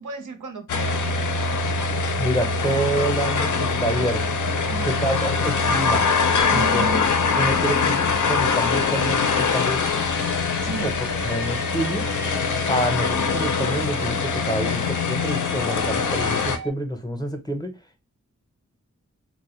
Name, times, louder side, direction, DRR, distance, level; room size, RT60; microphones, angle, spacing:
voice 1, 0.0-1.3 4.7-5.0 6.5-7.1 10.6-10.9, right 4 dB, 75° right, 0.6 m, -33 dB
sound 1, 0.7-16.6, left 4 dB, 75° left, 0.5 m, -23 dB
voice 2, 2.2-4.2 4.8-6.0 6.5-6.9 7.4-10.0 10.8-10.9 11.2-12.0 12.7-17.7, right 1 dB, 15° left, 0.6 m, -27 dB
sound 2, 6.3-16.7, right 1 dB, 35° right, 0.4 m, -38 dB
2.3 x 2.1 x 3.0 m
cardioid pair, 40°, 31 cm